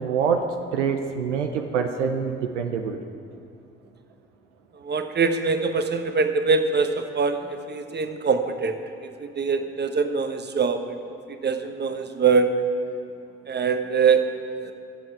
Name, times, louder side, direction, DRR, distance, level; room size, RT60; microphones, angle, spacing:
voice 1, 0.0-3.0, right 6 dB, 80° right, 5 dB, 0.7 m, -25 dB
voice 2, 4.8-8.8 9.0-11.0 11.4-12.5 13.5-14.2 14.6-14.7, right 5 dB, 30° right, 8 dB, 1.1 m, -23 dB
22.5 x 7.8 x 4.7 m, 2.4 s
figure-of-eight pair, 40°, 34 cm